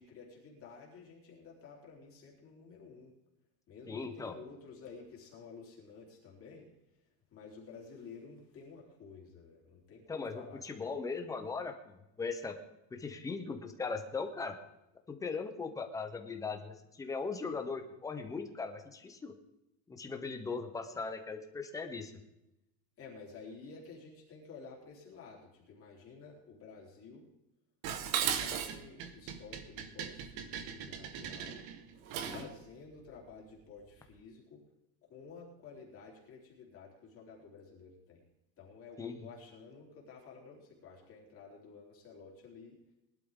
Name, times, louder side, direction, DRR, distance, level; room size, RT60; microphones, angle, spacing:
voice 1, 0.0-3.1 3.7-6.7 7.3-10.9 23.0-27.3 28.1-31.6 32.2-34.6 35.1-38.2 38.6-42.9, left 4 dB, 25° left, -3 dB, 3.4 m, -52 dB
voice 2, 3.9-4.4 10.1-12.6 12.9-14.6 15.1-19.3 19.9-22.1 32.3-32.5 39.0-39.2, left 4 dB, 5° left, 6 dB, 0.5 m, -39 dB
Dishes pots and pans, 27.8-32.5, right 8 dB, 50° right, 1.3 m, -37 dB
20.5 x 11.5 x 3.6 m, 0.88 s
cardioid pair, 175°, 49 cm